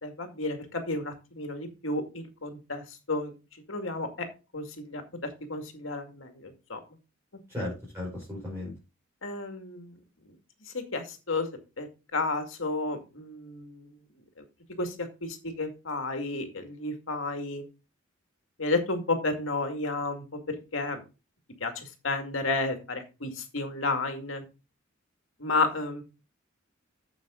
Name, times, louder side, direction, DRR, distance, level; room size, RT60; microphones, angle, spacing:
voice 1, 0.0-3.3 3.7-4.3 4.5-5.0 5.5-6.8 7.6-7.7 9.2-9.9 10.7-11.5 11.8-11.9 12.1-13.9 14.4-14.5 14.8-17.6 18.6-21.0 21.6-24.4 25.4-26.0, left 3 dB, 75° left, 5 dB, 2.2 m, -32 dB
voice 2, 7.5-8.7, left 1 dB, 15° right, -6 dB, 5.1 m, -35 dB
9.1 x 7.5 x 3.8 m, 0.29 s
head